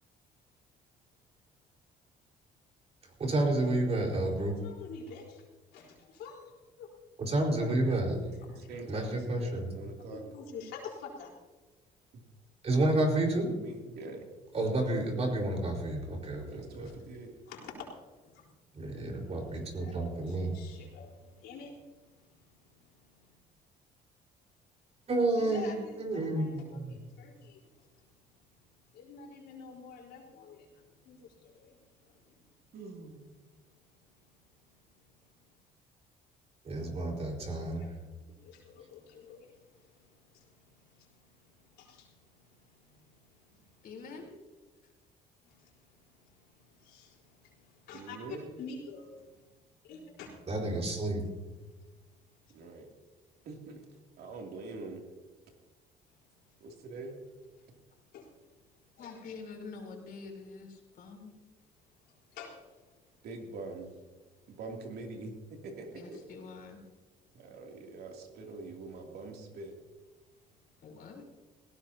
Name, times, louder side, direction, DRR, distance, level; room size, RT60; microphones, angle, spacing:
voice 1, 3.2-4.6 7.2-8.2 8.9-9.7 12.6-13.5 14.5-16.9 18.7-20.5 25.1-25.7 26.0-27.0 36.6-37.9 50.5-51.2, right 2 dB, 40° right, 0 dB, 4.6 m, -30 dB
voice 2, 4.4-5.5 5.7-6.9 7.9-8.2 8.5-8.7 10.1-11.3 16.8-18.5 18.9-23.4 25.4-28.0 28.3-28.4 28.7-32.5 33.4-35.6 37.6-38.0 38.3-43.9 45.4-50.3 51.6-52.6 53.3-53.5 56.1-56.6 57.6-57.8 58.1-58.5 59.0-59.2 61.9-63.2, left 5 dB, 80° left, -1 dB, 4.1 m, -50 dB
voice 3, 8.7-10.2 12.1-12.2 13.5-14.3 16.4-17.3 32.7-33.2 47.9-48.5 52.5-52.9 53.4-53.8 54.2-55.0 56.6-57.1 63.2-63.9 64.5-65.3 65.6-66.2 67.3-69.7, right 3 dB, 70° right, 1 dB, 2.8 m, -44 dB
voice 4, 43.8-44.3 59.0-61.3 65.9-66.8 70.8-71.2, left 4 dB, 60° left, 1 dB, 3.9 m, -46 dB
18.5 x 17.0 x 2.9 m, 1.3 s
cardioid pair, 110°, 17 cm